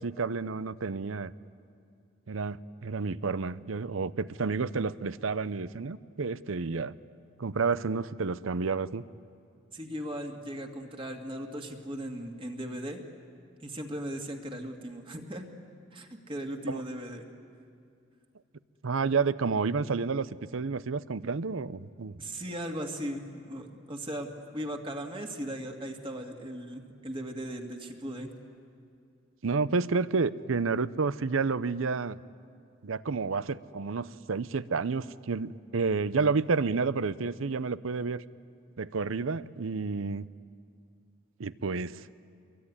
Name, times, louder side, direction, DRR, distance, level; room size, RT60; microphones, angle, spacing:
voice 1, 0.0-1.3 2.3-7.0 7.4-9.0 16.7-16.8 18.8-20.3 20.5-22.2 29.4-32.2 32.8-38.2 38.8-40.2 41.4-42.1, right 4 dB, 85° right, 17 dB, 0.7 m, -30 dB
voice 2, 9.7-13.0 13.6-15.5 15.9-17.3 22.2-24.3 24.5-28.3, equal, 25° right, 3 dB, 2.1 m, -38 dB
26.0 x 22.5 x 9.9 m, 2.4 s
head